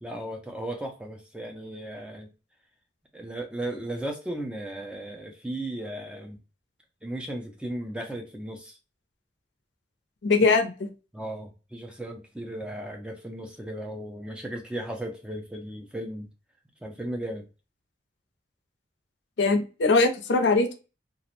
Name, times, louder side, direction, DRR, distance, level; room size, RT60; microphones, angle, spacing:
voice 1, 0.0-2.3 3.1-6.4 7.0-8.8 11.1-16.3 16.8-17.5, right 1 dB, 5° right, 2 dB, 0.3 m, -36 dB
voice 2, 10.2-10.7 19.4-20.7, left 3 dB, 70° left, 6 dB, 0.5 m, -21 dB
2.4 x 2.0 x 2.9 m, 0.32 s
head